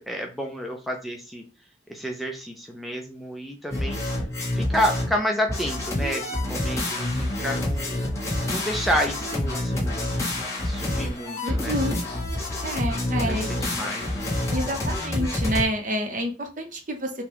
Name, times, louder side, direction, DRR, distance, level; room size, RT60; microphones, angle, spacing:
voice 1, 0.0-1.4 1.9-4.0 4.5-8.0 8.5-10.0 10.6-11.8 13.2-14.2, equal, ahead, 1 dB, 0.5 m, -30 dB
sound 1, 3.7-5.2 5.5-15.6, left 1 dB, 15° left, 1.2 m, -27 dB
voice 2, 11.4-12.0 12.6-13.5 14.5-17.1, equal, 45° right, 5 dB, 0.8 m, -28 dB
5.9 x 2.3 x 3.5 m, 0.34 s
head